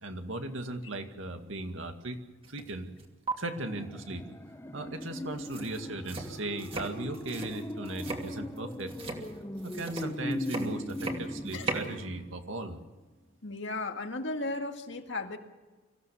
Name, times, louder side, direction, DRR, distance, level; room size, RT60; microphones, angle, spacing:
voice 1, 0.0-2.2 2.5-2.9 3.4-4.2 4.7-8.9 9.6-12.8, right 2 dB, 75° right, 6 dB, 2.2 m, -37 dB
sound 1, 2.4-2.7 3.0-3.3 5.0-5.1 5.4-11.9, right 3 dB, 30° right, 2.9 m, -38 dB
sound 2, 3.6-12.7 13.0-13.1, left 1 dB, 15° left, 0.8 m, -39 dB
voice 2, 13.4-15.4, left 2 dB, 60° left, 5 dB, 2.0 m, -35 dB
25.0 x 16.0 x 7.1 m, 1.2 s
head